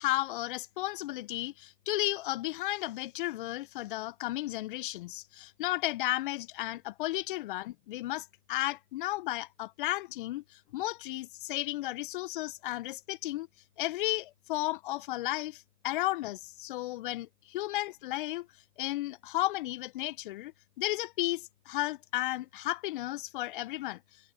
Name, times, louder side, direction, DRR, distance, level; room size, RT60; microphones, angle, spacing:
voice 1, 0.0-13.5 13.8-18.5 18.8-20.5 20.8-24.0, left 17 dB, 30° left, 1.4 m, -34 dB
figure-of-eight pair, 135°, 50 cm